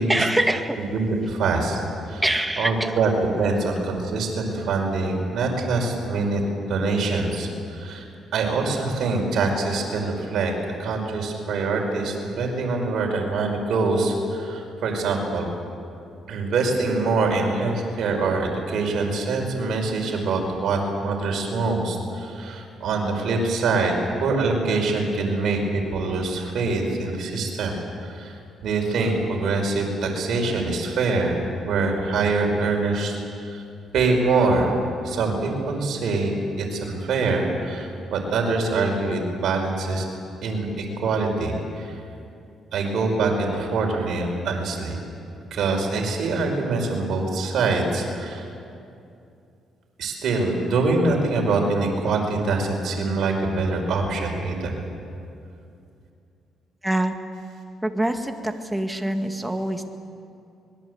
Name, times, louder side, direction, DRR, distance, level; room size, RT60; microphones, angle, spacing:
voice 1, 0.1-0.8 2.2-3.0 56.8-57.1 57.8-59.8, right 1 dB, 5° right, 5 dB, 2.0 m, -24 dB
voice 2, 0.9-1.8 2.1-2.2 2.6-3.1 3.4-6.4 6.7-8.0 8.3-10.5 10.8-15.5 16.3-28.4 28.6-31.3 31.6-33.1 33.4-33.6 33.9-34.7 35.0-40.0 40.4-41.9 42.7-45.0 45.5-48.5 50.0-54.8, right 3 dB, 70° right, 2 dB, 5.0 m, -24 dB
25.0 x 21.5 x 8.1 m, 2.5 s
cardioid pair, 90°, 0 cm